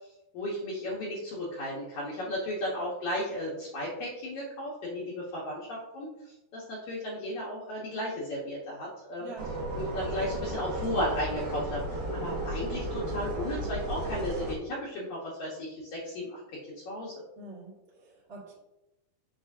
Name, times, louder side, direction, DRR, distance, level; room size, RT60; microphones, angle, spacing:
voice 1, 0.3-9.3 9.8-16.4 16.7-17.1, left 1 dB, 65° left, -5 dB, 2.0 m, -35 dB
voice 2, 9.2-9.5 17.3-18.5, right 2 dB, 30° right, -8 dB, 1.2 m, -45 dB
sound 1, 9.4-14.5, right 1 dB, 60° right, 2.1 m, -34 dB
7.6 x 6.1 x 2.7 m, 0.93 s
omnidirectional pair, 4.7 m